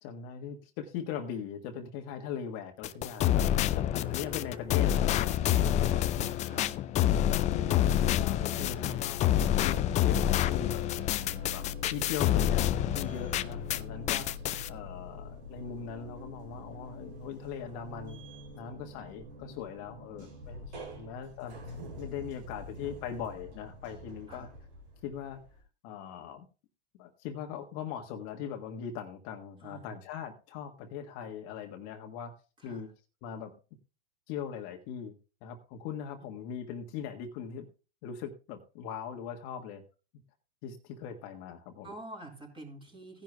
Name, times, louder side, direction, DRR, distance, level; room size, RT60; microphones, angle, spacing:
voice 1, 0.0-5.4 5.7-6.1 6.5-6.7 7.3-9.2 9.6-10.8 11.5-14.4 14.7-18.2 18.5-21.6 22.0-24.5 25.0-25.4 25.8-26.5 27.0-32.3 32.6-32.9 33.2-33.5 34.3-35.1 35.4-37.7 38.0-39.8 40.6-41.9, left 8 dB, 50° left, 4 dB, 1.5 m, -40 dB
sound 1, 2.8-13.8 14.1-14.7, left 12 dB, 20° left, 0.4 m, -28 dB
voice 2, 5.8-6.7 14.5-14.7 20.5-21.2 24.3-24.5 29.6-29.9 32.6-32.8 36.2-36.3 41.8-43.2, right 2 dB, 15° right, 1 dB, 4.0 m, -48 dB
sound 2, 7.6-25.6, left 4 dB, 75° right, 3.9 m, -44 dB
16.5 x 10.5 x 2.2 m, 0.33 s
hypercardioid pair, 110°, 33 cm